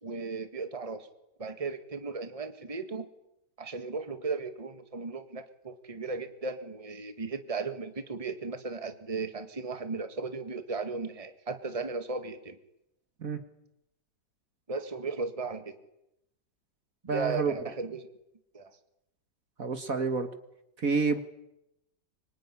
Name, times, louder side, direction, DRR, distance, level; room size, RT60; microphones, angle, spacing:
voice 1, 0.0-1.1 1.4-3.1 3.6-12.6 14.7-15.8 17.0-18.1 18.5-18.7, right 4 dB, 20° right, 8 dB, 1.8 m, -36 dB
voice 2, 17.1-17.5 19.6-20.3 20.8-21.2, right 4 dB, 55° right, 8 dB, 2.1 m, -28 dB
25.0 x 24.0 x 9.9 m, 0.85 s
omnidirectional pair, 1.9 m